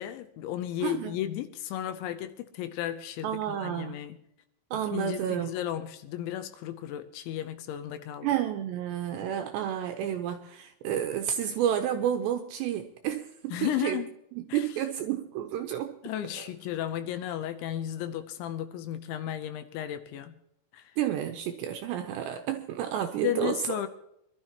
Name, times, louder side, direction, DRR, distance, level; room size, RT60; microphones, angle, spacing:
voice 1, 0.0-4.2 4.9-8.3 13.5-14.1 14.5-14.7 16.0-20.3 20.7-21.0 23.2-23.9, left 12 dB, 80° left, 2.9 m, -34 dB
voice 2, 0.8-1.1 3.2-4.0 4.7-5.5 8.2-14.0 14.4-15.9 21.0-23.8, right 10 dB, 85° right, 2.6 m, -30 dB
24.5 x 12.5 x 2.9 m
omnidirectional pair, 5.7 m